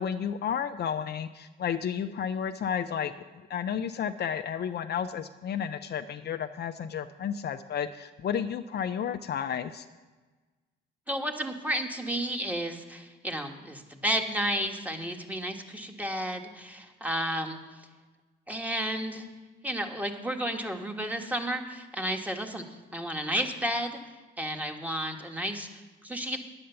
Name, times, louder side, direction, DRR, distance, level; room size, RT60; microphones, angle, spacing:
voice 1, 0.0-3.1 3.5-9.9, left 8 dB, 55° left, 8 dB, 0.6 m, -32 dB
voice 2, 11.1-17.6 18.5-19.3 19.6-22.6 22.9-24.0 24.4-26.4, right 1 dB, 5° right, 3 dB, 1.5 m, -32 dB
10.0 x 8.7 x 6.9 m, 1.3 s
cardioid pair, 90°, 20 cm